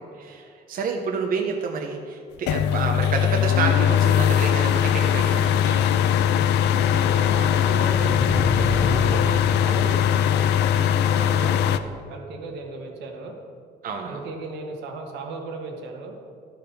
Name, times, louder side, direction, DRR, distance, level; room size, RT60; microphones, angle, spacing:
voice 1, 0.2-5.8 11.1-11.5 13.8-14.2, right 5 dB, 55° right, 2 dB, 0.8 m, -29 dB
sound 1, 2.5-11.8, left 9 dB, 80° left, 0.4 m, -20 dB
voice 2, 6.8-13.4 14.0-16.1, right 3 dB, 85° right, 2 dB, 1.4 m, -36 dB
sound 2, 7.9-10.2, left 1 dB, 20° left, 1.2 m, -30 dB
12.0 x 4.6 x 5.2 m, 2.3 s
cardioid pair, 105°, 18 cm